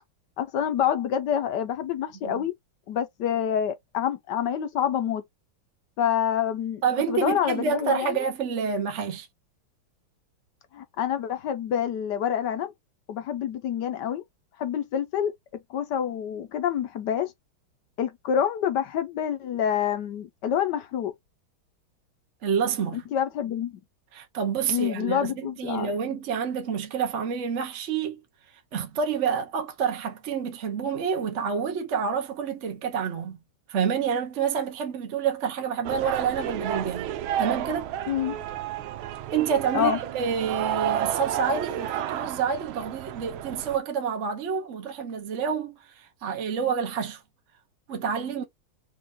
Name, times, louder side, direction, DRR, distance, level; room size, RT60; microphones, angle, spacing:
voice 1, 0.4-2.5 2.9-5.2 6.0-6.8 7.1-8.2 10.7-12.7 13.1-14.2 14.6-15.3 15.7-17.3 18.0-21.1 22.9-23.8 24.7-25.9 38.1-38.4 39.7-40.0, left 9 dB, 65° left, 1.2 m, -27 dB
voice 2, 6.8-9.3 22.4-23.0 24.1-28.2 28.7-33.4 33.7-37.1 37.4-37.9 39.3-47.2 47.9-48.4, right 6 dB, 55° right, 0.8 m, -28 dB
sound 1, 35.8-43.8, right 11 dB, 80° right, 1.4 m, -31 dB
4.5 x 2.5 x 3.7 m
omnidirectional pair, 2.2 m